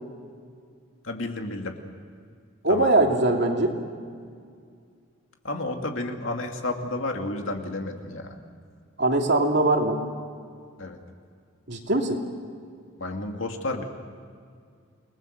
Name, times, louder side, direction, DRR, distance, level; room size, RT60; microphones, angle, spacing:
voice 1, 1.0-1.8 2.7-2.9 5.4-8.4 10.8-11.0 13.0-13.8, left 2 dB, 70° left, 3 dB, 2.5 m, -31 dB
voice 2, 2.6-3.7 9.0-10.0 11.7-12.2, right 2 dB, 55° right, 2 dB, 2.9 m, -21 dB
29.5 x 20.5 x 6.7 m, 2.2 s
head